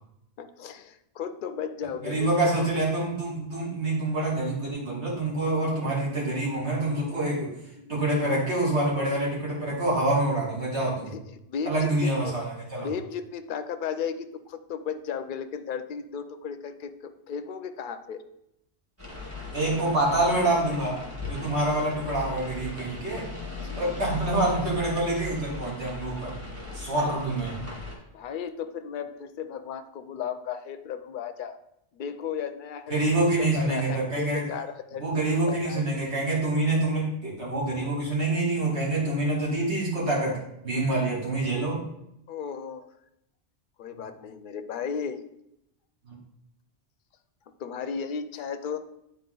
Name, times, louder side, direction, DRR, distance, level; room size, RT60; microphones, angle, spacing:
voice 1, 0.4-2.3 2.6-2.7 7.7-8.0 11.0-11.2 11.5-12.4 12.8-18.2 23.6-23.8 28.1-31.6 31.9-33.0 33.4-35.9 42.3-42.9 43.8-45.2 47.6-48.8, left 7 dB, 60° left, 9 dB, 0.6 m, -35 dB
voice 2, 2.0-7.5 7.9-11.1 11.7-12.9 19.5-21.0 21.3-23.3 23.8-26.4 26.7-27.5 32.9-34.4 35.0-40.4 40.6-41.8 46.1-46.2, right 2 dB, 70° right, -5 dB, 2.6 m, -26 dB
sound 1, 19.0-27.9, left 3 dB, 10° right, 1.6 m, -38 dB
8.8 x 4.3 x 3.8 m, 0.81 s
omnidirectional pair, 1.2 m